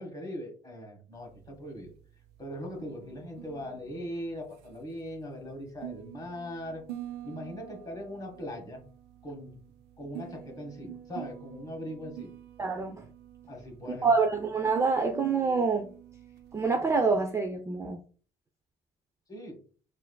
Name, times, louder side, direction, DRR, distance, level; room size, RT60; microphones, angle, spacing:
voice 1, 0.0-1.9 2.4-6.8 7.2-8.8 9.2-9.6 10.0-12.3 13.5-14.1 19.3-19.6, equal, 20° left, 1.3 m, -40 dB
sound 1, 1.1-17.2, right 11 dB, 80° right, 0.4 m, -47 dB
voice 2, 12.6-13.1 13.9-15.9 16.5-18.0, right 4 dB, 15° right, 0.3 m, -26 dB
4.2 x 2.5 x 2.2 m
cardioid pair, 110°, 17 cm